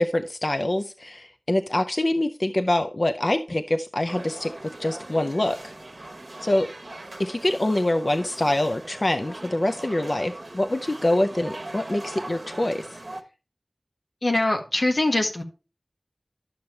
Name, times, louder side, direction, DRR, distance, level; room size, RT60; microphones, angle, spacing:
voice 1, 0.0-4.5 4.8-5.6 6.4-6.7 7.2-12.9, left 1 dB, 55° left, 7 dB, 0.6 m, -25 dB
sound 1, 4.1-13.2, right 2 dB, 60° right, 1.0 m, -40 dB
voice 2, 14.2-15.4, left 2 dB, 75° left, 4 dB, 1.5 m, -23 dB
11.5 x 7.0 x 3.2 m, 0.33 s
wide cardioid pair, 50°, 0 cm